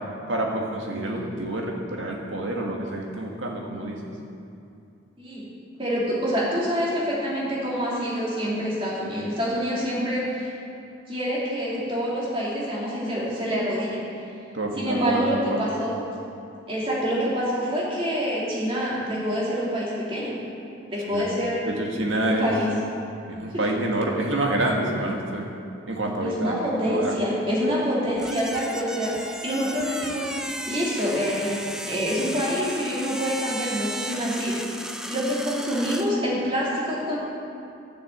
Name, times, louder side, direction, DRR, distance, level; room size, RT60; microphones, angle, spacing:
voice 1, 0.3-4.0 14.5-15.7 21.1-21.2 21.6-22.5 23.3-25.5 25.9-26.5 26.9-27.1, right 1 dB, 75° right, 0 dB, 1.7 m, -27 dB
voice 2, 5.8-10.5 11.1-14.0 14.8-15.9 16.7-20.4 20.9-21.6 22.2-22.7 26.2-34.7 35.1-37.2, equal, 25° right, -7 dB, 2.8 m, -26 dB
sound 1, 28.2-36.1, right 1 dB, 5° right, 0.4 m, -35 dB
11.5 x 6.8 x 8.0 m, 2.6 s
head